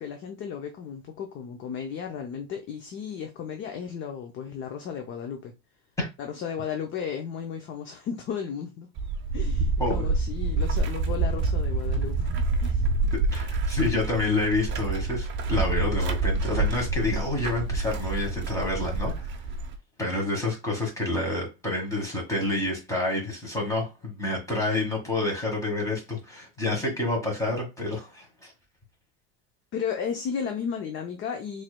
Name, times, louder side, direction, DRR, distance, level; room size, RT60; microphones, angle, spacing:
voice 1, 0.0-5.5 6.2-8.9 9.3-12.8 29.7-31.6, left 7 dB, 35° left, 0.5 m, -34 dB
sound 1, 9.0-19.8, right 3 dB, 30° right, 0.6 m, -27 dB
voice 2, 13.3-19.3 20.0-28.5, left 2 dB, 10° left, 1.7 m, -28 dB
4.3 x 3.2 x 2.2 m
supercardioid pair, 140°, 37 cm